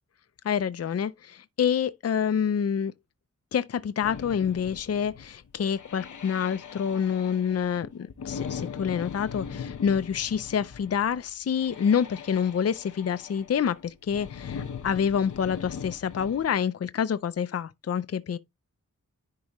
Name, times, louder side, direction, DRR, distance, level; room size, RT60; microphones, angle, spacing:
voice 1, 0.4-2.9 3.5-18.4, left 7 dB, 55° left, 0.5 m, -27 dB
sound 1, 4.0-16.6, left 7 dB, 85° left, 0.9 m, -40 dB
10.5 x 4.6 x 3.0 m
wide cardioid pair, 100°, 29 cm